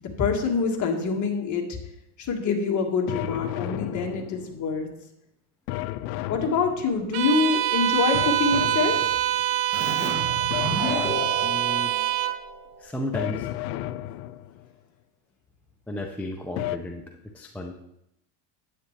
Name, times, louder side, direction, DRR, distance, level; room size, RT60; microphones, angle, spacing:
voice 1, 0.0-1.8 2.2-4.9 6.3-9.1, left 5 dB, 35° left, 1 dB, 1.7 m, -25 dB
sound 1, 3.1-4.7 5.7-7.2 8.1-9.4 10.5-11.9 13.1-14.7 16.6-16.8, left 14 dB, 70° left, 0.6 m, -33 dB
Bowed string instrument, 7.1-12.4, right 13 dB, 45° right, 0.7 m, -25 dB
Keyboard (musical), 9.7-13.1, right 1 dB, 25° right, 2.3 m, -32 dB
voice 2, 11.4-11.9 12.8-13.5 15.9-17.7, left 1 dB, 5° left, 2 dB, 0.4 m, -34 dB
9.9 x 8.9 x 3.2 m, 0.82 s
supercardioid pair, 130°, 49 cm